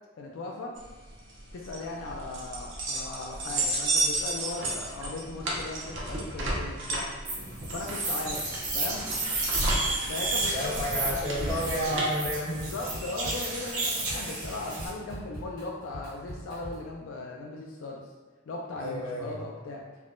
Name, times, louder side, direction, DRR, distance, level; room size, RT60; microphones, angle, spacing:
voice 1, 0.2-0.7 1.5-7.1 7.7-9.1 10.1-11.4 12.5-18.0 18.5-19.8, left 3 dB, 70° left, -1 dB, 0.3 m, -38 dB
sound 1, 0.8-12.1, right 2 dB, 60° right, 0.6 m, -32 dB
sound 2, 7.2-14.9, right 2 dB, 85° right, 0.9 m, -32 dB
Drum kit, 9.6-10.1 10.4-16.9, equal, 40° left, 1.1 m, -42 dB
voice 2, 10.5-12.7 18.8-19.4, equal, 25° left, -8 dB, 0.8 m, -31 dB
3.4 x 2.1 x 2.5 m, 1.3 s
head